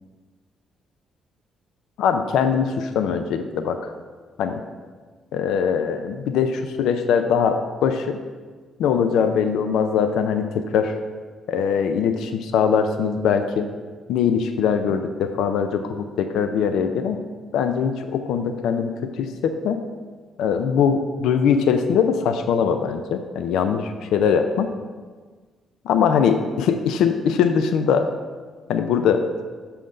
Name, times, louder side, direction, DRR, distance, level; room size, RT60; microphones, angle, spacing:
voice 1, 2.0-3.8 4.4-4.6 5.3-8.2 8.8-11.0 11.5-13.7 14.1-17.2 17.5-19.8 20.4-24.7 25.8-28.1 28.7-29.3, left 7 dB, 85° left, 8 dB, 0.5 m, -21 dB
6.6 x 5.7 x 5.1 m, 1.5 s
cardioid pair, 90°, 0 cm